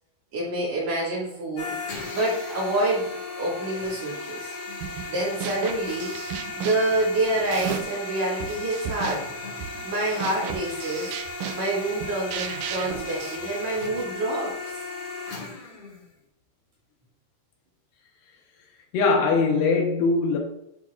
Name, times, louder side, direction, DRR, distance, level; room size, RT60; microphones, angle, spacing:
voice 1, 0.3-1.7 2.1-4.5 5.1-6.1 6.6-9.3 9.8-11.1 11.5-14.5, right 2 dB, 50° right, 3.1 m, -27 dB
sound 1, 1.6-16.1, left 3 dB, 50° left, 2.0 m, -36 dB
sound 2, 4.8-5.1 5.4-8.0 8.4-14.1, right 8 dB, 80° right, 1.9 m, -35 dB
voice 2, 18.9-20.4, left 4 dB, 90° left, 3.3 m, -21 dB
8.1 x 6.1 x 2.5 m
omnidirectional pair, 4.6 m